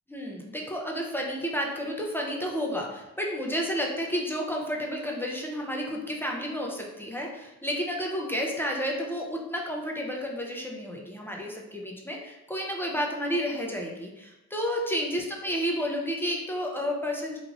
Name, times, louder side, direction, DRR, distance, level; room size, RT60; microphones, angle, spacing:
voice 1, 0.1-17.4, equal, 5° left, -1 dB, 0.6 m, -31 dB
3.3 x 2.3 x 2.4 m, 0.97 s
supercardioid pair, 55°, 40 cm